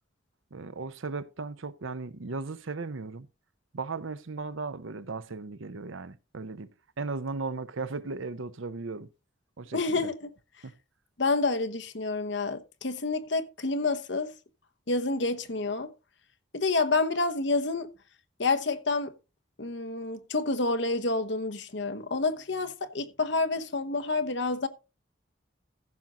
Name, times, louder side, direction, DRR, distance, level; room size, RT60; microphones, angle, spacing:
voice 1, 0.5-3.3 3.7-6.7 7.0-9.1 9.6-10.1 10.6-10.7, right 3 dB, 85° right, 0.8 m, -36 dB
voice 2, 9.7-10.3 11.2-14.3 14.9-15.9 16.5-17.9 18.4-19.1 19.6-24.7, left 3 dB, 65° left, 1.1 m, -28 dB
14.5 x 6.1 x 3.8 m
head